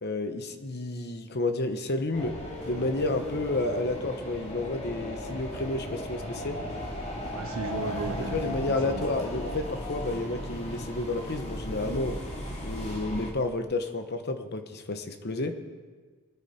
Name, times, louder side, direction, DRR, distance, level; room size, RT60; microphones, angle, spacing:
voice 1, 0.0-2.4 2.7-6.6 8.2-12.2 12.6-15.5, left 2 dB, 50° left, 7 dB, 1.1 m, -31 dB
sound 1, 2.1-13.3, equal, 30° left, 2.2 m, -36 dB
voice 2, 7.3-9.2 15.4-15.5, right 4 dB, 60° right, 8 dB, 0.5 m, -37 dB
23.5 x 9.2 x 4.4 m, 1.5 s
head